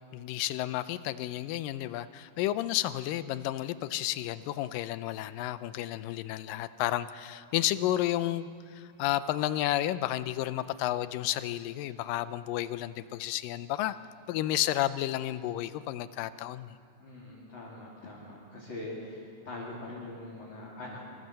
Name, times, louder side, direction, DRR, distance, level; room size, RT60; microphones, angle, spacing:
voice 1, 0.1-14.0 14.3-16.8, left 14 dB, 85° left, 14 dB, 2.3 m, -31 dB
voice 2, 17.0-21.0, left 2 dB, 35° left, -6 dB, 3.7 m, -42 dB
24.5 x 17.0 x 7.6 m, 2.5 s
omnidirectional pair, 3.8 m